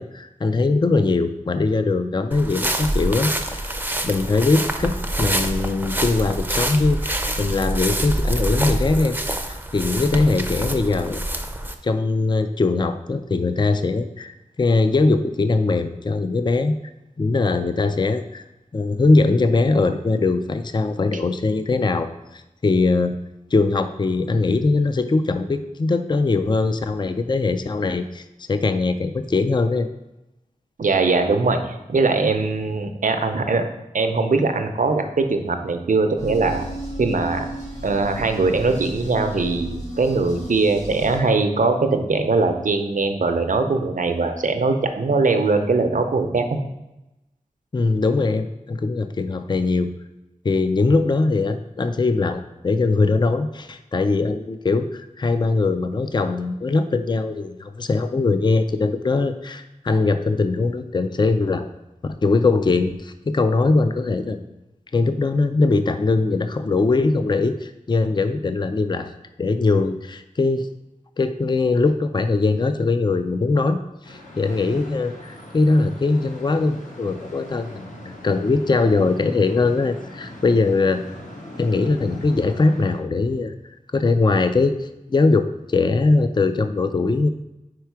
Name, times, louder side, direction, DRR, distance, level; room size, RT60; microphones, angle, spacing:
voice 1, 0.0-3.8 4.0-9.2 9.4-11.2 11.8-16.7 17.2-18.4 18.7-23.2 23.5-29.9 47.7-49.9 50.4-61.7 62.0-64.5 64.9-69.1 69.4-70.7 71.2-73.8 74.1-81.0 81.6-83.5 83.9-87.3, left 3 dB, 35° left, 9 dB, 0.3 m, -21 dB
sound 1, 2.3-11.7, right 1 dB, 15° right, 0.5 m, -26 dB
voice 2, 30.8-33.7 33.9-36.7 37.0-37.5 37.8-46.6, right 3 dB, 75° right, 6 dB, 0.6 m, -21 dB
sound 2, 36.2-41.2, right 1 dB, 60° left, 2.0 m, -34 dB
sound 3, 74.0-83.0, left 1 dB, 75° left, 1.2 m, -40 dB
4.8 x 4.5 x 4.6 m, 0.95 s
wide cardioid pair, 60°, 14 cm